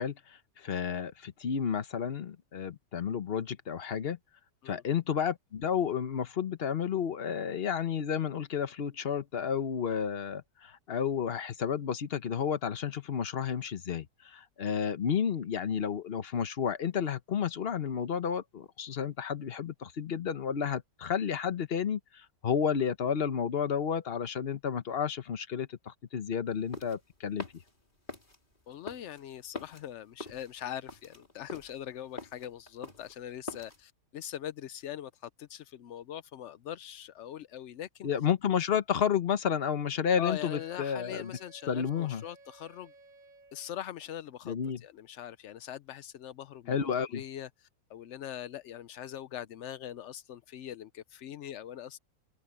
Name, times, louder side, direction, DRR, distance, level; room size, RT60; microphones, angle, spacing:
voice 1, 0.0-4.2 4.7-27.4 38.0-41.3 41.7-42.2 44.4-44.8 46.7-47.2, left 7 dB, 40° left, 1.0 m, -31 dB
sound 1, 26.5-33.8, left 2 dB, 25° left, 4.0 m, -45 dB
voice 2, 28.7-38.1 40.2-42.9 43.5-52.0, left 10 dB, 75° left, 0.6 m, -42 dB
Wind instrument woodwind instrument, 40.2-43.8, right 3 dB, 90° right, 3.6 m, -57 dB
open air
omnidirectional pair, 1.9 m